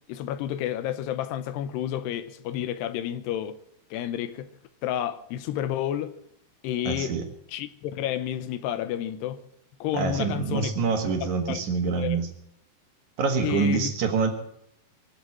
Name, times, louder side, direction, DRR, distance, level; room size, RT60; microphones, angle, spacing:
voice 1, 0.1-3.6 3.9-4.5 4.8-6.1 6.6-7.2 7.5-9.4 9.8-10.7 11.2-11.6 12.0-12.2 13.4-13.9, left 11 dB, 80° left, 2.7 m, -30 dB
voice 2, 6.8-7.2 9.9-12.3 13.2-14.3, right 5 dB, 55° right, 2.4 m, -26 dB
23.5 x 7.9 x 7.3 m
omnidirectional pair, 5.2 m